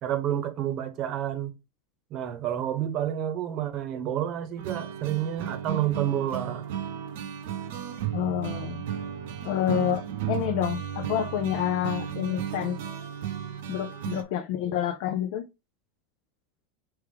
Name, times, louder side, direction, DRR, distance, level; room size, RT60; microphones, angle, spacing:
voice 1, 0.0-1.5 2.1-6.7, right 11 dB, 50° right, 0.8 m, -29 dB
sound 1, 4.6-14.2, right 9 dB, 70° right, 0.5 m, -34 dB
voice 2, 8.1-8.8 9.4-12.8 13.7-15.5, left 11 dB, 65° left, 0.4 m, -28 dB
3.4 x 3.2 x 3.4 m
hypercardioid pair, 100°, 0 cm